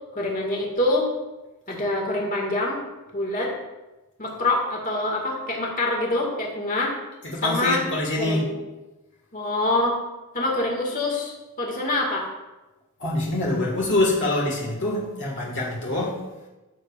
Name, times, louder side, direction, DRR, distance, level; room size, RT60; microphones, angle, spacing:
voice 1, 0.1-1.1 1.7-2.8 3.1-3.5 4.2-6.9 7.4-7.9 8.2-8.6 9.3-10.0 10.3-12.3, left 2 dB, 40° left, -1 dB, 2.0 m, -25 dB
voice 2, 7.2-8.5 13.0-16.3, left 2 dB, 55° left, -3 dB, 1.8 m, -25 dB
14.5 x 7.1 x 2.5 m, 1.1 s
head